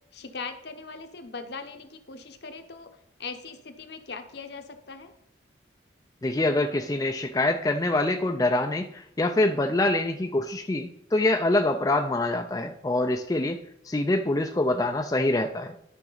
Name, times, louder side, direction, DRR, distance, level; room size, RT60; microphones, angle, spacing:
voice 1, 0.1-2.9 3.2-5.1, left 4 dB, 55° left, 7 dB, 0.9 m, -40 dB
voice 2, 6.2-13.6 13.8-15.8, left 2 dB, 20° left, 4 dB, 0.4 m, -25 dB
11.5 x 5.9 x 4.0 m, 0.79 s
head